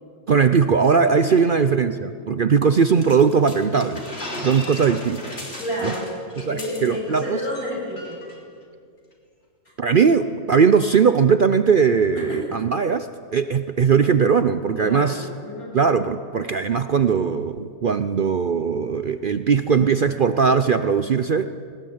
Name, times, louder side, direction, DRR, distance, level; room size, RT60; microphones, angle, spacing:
voice 1, 0.3-4.0 4.4-5.2 5.8-5.9 6.5-7.4 9.8-15.2 15.7-21.5, right 6 dB, 50° right, 11 dB, 0.6 m, -19 dB
voice 2, 1.1-1.6 5.6-6.2 6.5-8.2 12.1-12.6 14.8-15.8, equal, 80° left, -4 dB, 8.5 m, -30 dB
sound 1, 3.0-7.2 7.5-7.7 8.0-8.4, left 1 dB, 45° left, 3.9 m, -35 dB
20.5 x 19.0 x 8.7 m, 2.2 s
omnidirectional pair, 1.5 m